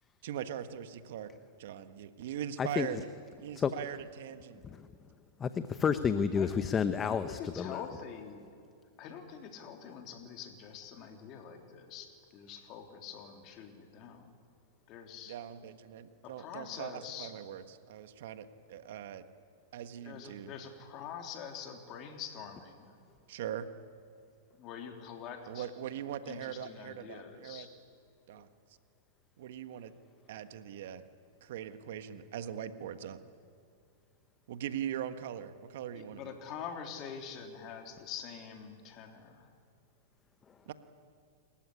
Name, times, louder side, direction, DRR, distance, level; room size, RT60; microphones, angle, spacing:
voice 1, 0.2-1.3 1.6-3.1 3.4-4.6 15.3-19.2 19.7-20.5 23.3-23.7 25.5-27.7 28.3-28.5 29.4-29.9 30.3-31.0 31.4-33.2 34.5-36.3 40.7-40.8, right 10 dB, 65° right, 10 dB, 1.4 m, -41 dB
voice 2, 5.4-7.8, left 6 dB, 20° left, 11 dB, 0.9 m, -30 dB
voice 3, 7.0-8.5 9.0-14.3 14.9-15.4 16.2-17.3 20.0-23.0 24.5-25.7 26.2-27.7 35.9-39.5, left 7 dB, 40° left, 3 dB, 3.4 m, -45 dB
28.0 x 15.0 x 10.0 m, 2.3 s
hypercardioid pair, 120°, 0 cm